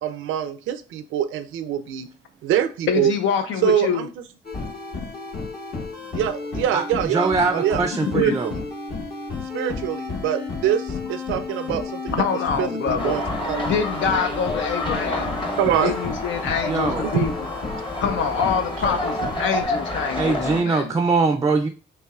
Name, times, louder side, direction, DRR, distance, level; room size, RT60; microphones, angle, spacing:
voice 1, 0.0-2.1 2.4-3.1 3.6-4.1 6.1-7.8 8.1-8.6 9.5-12.3 12.6-13.6 15.3-15.9 17.0-17.3, right 10 dB, 85° right, 10 dB, 0.5 m, -24 dB
voice 2, 2.9-4.0 8.1-8.4 12.2-13.2 13.6-15.4 15.8-17.3 18.0-20.9, left 6 dB, 70° left, 6 dB, 0.5 m, -25 dB
sound 1, 4.4-19.6, left 3 dB, 55° left, 1.2 m, -32 dB
voice 3, 7.1-8.5 16.7-17.1 20.2-21.7, right 4 dB, 20° right, 7 dB, 0.4 m, -22 dB
sound 2, 13.0-20.6, left 1 dB, 25° left, 1.0 m, -29 dB
5.5 x 3.0 x 2.3 m, 0.36 s
cardioid pair, 90°, 20 cm